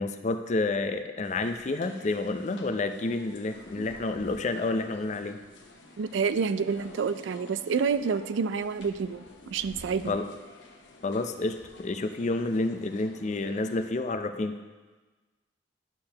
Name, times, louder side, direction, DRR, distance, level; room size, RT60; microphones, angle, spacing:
voice 1, 0.0-5.4 10.1-10.2 11.0-14.6, left 2 dB, 40° left, 8 dB, 0.4 m, -29 dB
sound 1, 1.2-13.9, left 2 dB, 80° left, 0.9 m, -51 dB
voice 2, 6.0-10.2, right 5 dB, 85° right, 12 dB, 0.4 m, -28 dB
10.5 x 6.6 x 2.9 m, 1.3 s
head